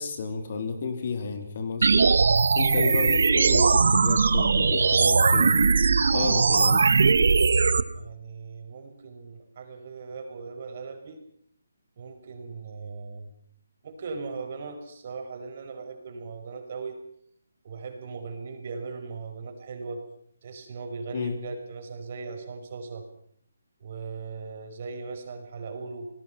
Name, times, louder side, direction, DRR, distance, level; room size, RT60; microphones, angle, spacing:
voice 1, 0.0-2.1 2.6-5.8 6.1-6.9 21.1-21.4, left 5 dB, 40° left, 7 dB, 3.4 m, -31 dB
sound 1, 1.8-7.8, right 4 dB, 65° right, 1.6 m, -20 dB
voice 2, 7.9-11.2 12.0-13.3 13.8-17.0 17.6-20.0 20.4-23.0 23.8-26.1, right 4 dB, 35° right, 4 dB, 5.5 m, -38 dB
29.0 x 19.5 x 5.7 m, 0.65 s
hypercardioid pair, 170°, 0 cm